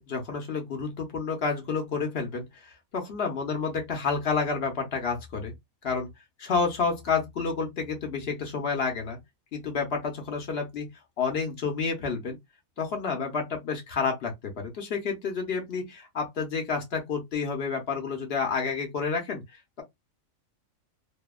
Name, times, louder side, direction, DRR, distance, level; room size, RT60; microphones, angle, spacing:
voice 1, 0.0-5.5 5.8-6.1 6.4-9.2 9.5-10.9 11.2-12.4 12.8-19.4, left 5 dB, 55° left, 0.8 m, -30 dB
2.7 x 2.1 x 2.2 m
omnidirectional pair, 1.5 m